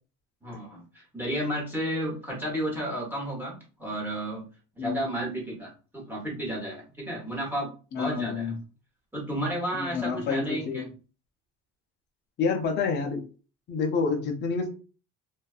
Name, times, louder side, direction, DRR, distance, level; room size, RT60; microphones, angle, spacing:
voice 1, 0.4-4.4 4.8-8.6 9.1-10.9, right 1 dB, 5° right, -3 dB, 0.9 m, -32 dB
voice 2, 7.9-8.5 9.7-10.9 12.4-13.2 13.7-14.7, left 5 dB, 30° left, 3 dB, 0.5 m, -28 dB
2.6 x 2.3 x 2.3 m, 0.36 s
cardioid pair, 155°, 34 cm